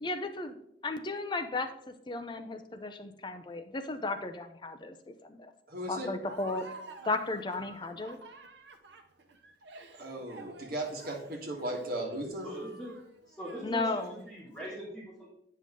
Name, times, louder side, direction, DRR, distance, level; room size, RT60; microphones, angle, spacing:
voice 1, 0.0-0.6 0.8-5.5 5.9-6.7 7.0-8.2 13.6-14.2, left 3 dB, 25° left, 8 dB, 0.5 m, -35 dB
voice 2, 5.7-6.1 9.9-12.5, right 1 dB, 55° right, 0 dB, 1.7 m, -36 dB
Laughter, 6.2-14.5, right 3 dB, 75° right, 0.9 m, -51 dB
voice 3, 12.4-12.9 13.3-15.3, equal, 5° left, -7 dB, 2.8 m, -41 dB
9.0 x 5.5 x 3.7 m, 0.75 s
head